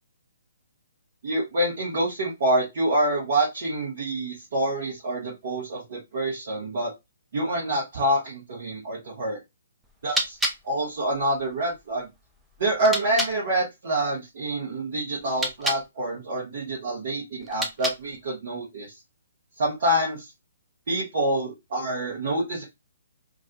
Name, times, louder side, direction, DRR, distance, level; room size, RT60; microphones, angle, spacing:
voice 1, 1.2-6.9 7.3-9.4 10.0-10.4 10.6-12.1 12.6-18.9 19.6-20.3 20.9-22.6, right 1 dB, 45° right, -5 dB, 0.9 m, -26 dB
sound 1, 9.8-13.4 15.2-15.9 17.4-18.2, right 1 dB, 5° right, 0.4 m, -32 dB
2.3 x 2.2 x 2.5 m, 0.21 s
figure-of-eight pair, 130°, 0 cm